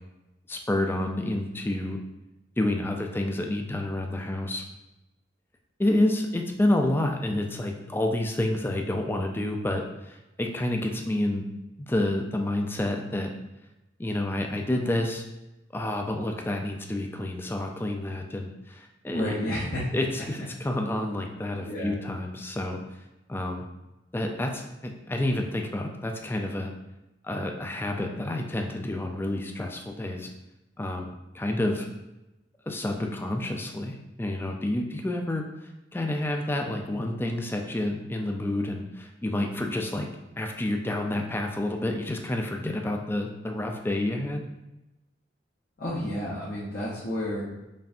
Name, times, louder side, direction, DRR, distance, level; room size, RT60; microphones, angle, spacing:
voice 1, 0.5-2.0 2.6-4.6 5.8-11.4 11.8-13.3 14.0-15.2 15.7-19.4 19.9-22.8 23.3-23.6 24.1-26.7 27.2-30.3 30.8-31.9 32.7-35.4 35.9-40.1 40.4-44.4, left 1 dB, 10° left, 3 dB, 0.3 m, -29 dB
voice 2, 19.1-19.9 21.6-22.0 45.8-47.4, left 1 dB, 55° left, -8 dB, 0.8 m, -30 dB
5.3 x 2.6 x 2.5 m, 0.97 s
head